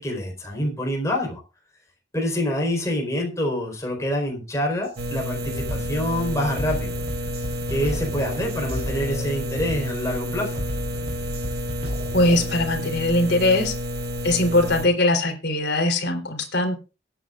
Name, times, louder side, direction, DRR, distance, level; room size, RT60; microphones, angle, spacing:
voice 1, 0.0-1.4 2.1-6.9 7.7-10.6, equal, 15° left, 0 dB, 4.3 m, -26 dB
Drum kit, 4.8-5.0 5.5-12.7, equal, 35° right, 3.6 m, -34 dB
sound 1, 5.0-14.9, equal, 55° right, 1.2 m, -30 dB
voice 2, 12.1-13.7 14.2-16.7, left 1 dB, 60° left, 3 dB, 3.5 m, -21 dB
22.5 x 9.2 x 2.5 m, 0.30 s
head